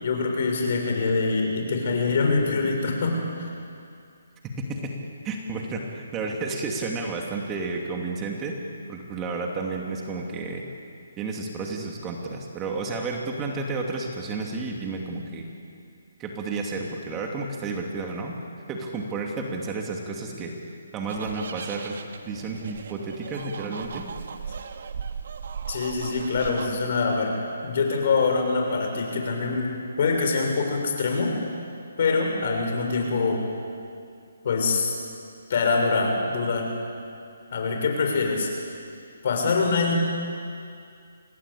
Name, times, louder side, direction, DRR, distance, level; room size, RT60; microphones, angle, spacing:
voice 1, 0.0-3.5 25.7-27.3 27.6-29.7 30.0-31.3 32.0-33.4 34.4-34.9 35.5-36.7 37.5-38.5 39.2-39.9, left 4 dB, 50° left, 2 dB, 6.8 m, -24 dB
voice 2, 5.2-8.5 8.9-10.6 11.2-15.5 16.2-18.4 18.7-20.5 20.9-24.1, right 3 dB, 15° right, 1 dB, 2.6 m, -31 dB
sound 1, 21.1-26.7, right 6 dB, 60° right, 2.0 m, -37 dB
27.0 x 20.5 x 8.7 m, 2.4 s
hypercardioid pair, 155°, 0 cm